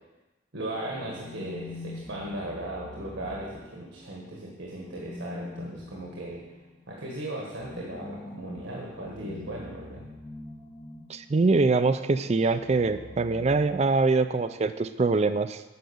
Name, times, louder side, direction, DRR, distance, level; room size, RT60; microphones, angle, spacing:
voice 1, 0.5-6.4 6.9-10.1, right 1 dB, 75° right, -3 dB, 1.6 m, -37 dB
sound 1, 0.8-4.1 4.7-11.4 12.3-14.3, left 2 dB, 25° left, 0.7 m, -44 dB
voice 2, 11.1-15.6, right 3 dB, 35° right, 12 dB, 0.4 m, -24 dB
9.5 x 5.2 x 7.0 m, 1.1 s
head